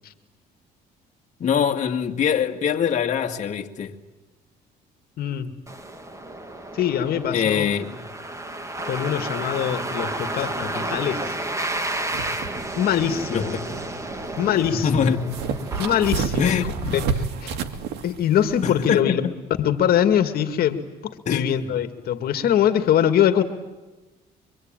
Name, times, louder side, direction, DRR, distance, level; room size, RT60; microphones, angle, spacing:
voice 1, 1.4-4.0 7.3-8.0 13.3-13.8 14.8-15.4 16.4-17.0 18.6-19.3 21.3-21.7, left 7 dB, 45° left, 2.2 m, -24 dB
voice 2, 5.2-5.5 6.7-7.7 8.8-11.4 12.8-13.5 14.4-15.1 15.8-16.5 16.9-17.6 18.0-19.2 19.6-23.4, left 10 dB, 65° left, 2.1 m, -23 dB
sound 1, 5.7-16.8, right 2 dB, 15° right, 2.6 m, -32 dB
sound 2, 11.7-18.9, right 5 dB, 80° right, 2.3 m, -31 dB
26.0 x 24.5 x 9.1 m
cardioid pair, 110°, 17 cm